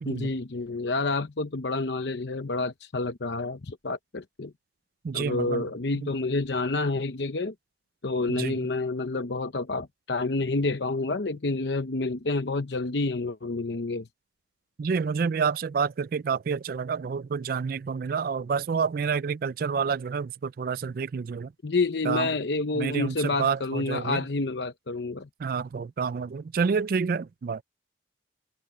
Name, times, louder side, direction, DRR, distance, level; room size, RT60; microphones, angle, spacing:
voice 1, 0.1-4.5 5.1-7.5 8.0-14.1 21.6-25.3, left 3 dB, 70° left, 0.8 m, -29 dB
voice 2, 5.0-5.6 8.3-8.5 14.8-21.5 22.0-22.3 22.8-24.2 25.4-27.6, right 5 dB, 50° right, 0.3 m, -28 dB
head